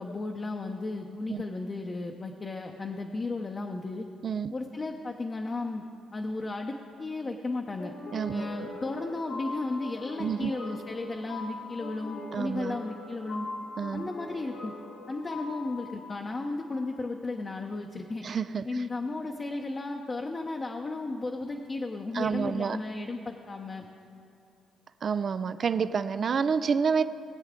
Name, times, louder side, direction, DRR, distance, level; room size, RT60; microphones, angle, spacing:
voice 1, 0.0-4.1 4.5-5.8 6.1-7.9 8.3-13.5 13.9-14.7 15.1-18.3 18.6-23.9, left 3 dB, 30° left, 2 dB, 0.7 m, -34 dB
voice 2, 4.2-4.5 8.1-8.5 10.2-10.5 12.3-12.8 13.8-14.1 18.2-18.6 22.1-22.8 25.0-27.0, right 6 dB, 50° right, 13 dB, 0.4 m, -28 dB
sound 1, 7.8-17.0, left 2 dB, 75° left, 2.7 m, -42 dB
19.5 x 8.1 x 3.7 m, 2.5 s
cardioid pair, 90°, 0 cm